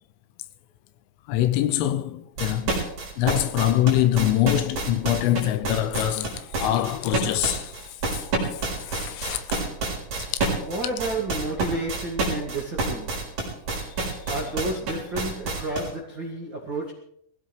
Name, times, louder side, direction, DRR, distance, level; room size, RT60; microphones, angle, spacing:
voice 1, 1.3-2.8 3.2-9.6 10.2-10.7, left 13 dB, 80° left, 3.1 m, -25 dB
sound 1, 2.4-15.9, right 3 dB, 40° right, 5.5 m, -28 dB
voice 2, 10.6-13.1 14.3-16.9, right 2 dB, 65° right, 1.1 m, -31 dB
23.0 x 16.0 x 3.3 m
omnidirectional pair, 5.8 m